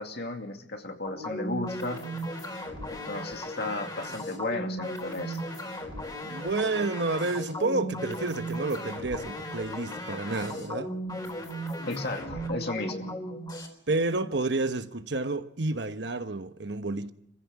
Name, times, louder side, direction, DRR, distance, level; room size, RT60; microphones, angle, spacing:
voice 1, 0.0-2.1 2.9-5.4 11.9-13.1, left 2 dB, 60° left, 2.5 m, -34 dB
sound 1, 1.0-13.7, equal, 20° left, 4.0 m, -36 dB
voice 2, 6.2-10.9 13.9-17.1, right 2 dB, 65° right, 1.2 m, -30 dB
25.0 x 15.5 x 8.4 m
head